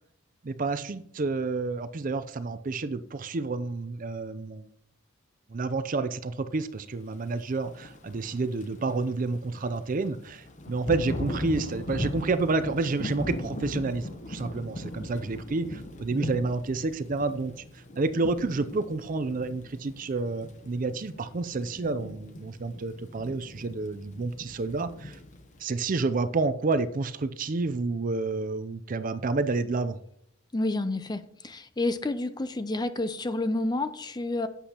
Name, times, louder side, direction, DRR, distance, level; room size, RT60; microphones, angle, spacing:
voice 1, 0.4-4.7 5.5-25.2 25.6-30.0, right 3 dB, 40° right, 12 dB, 0.5 m, -29 dB
Thunder / Rain, 7.5-25.6, left 1 dB, 35° left, 0.9 m, -39 dB
voice 2, 30.5-34.5, left 2 dB, 20° left, 11 dB, 0.5 m, -29 dB
11.0 x 8.3 x 2.9 m, 0.70 s
head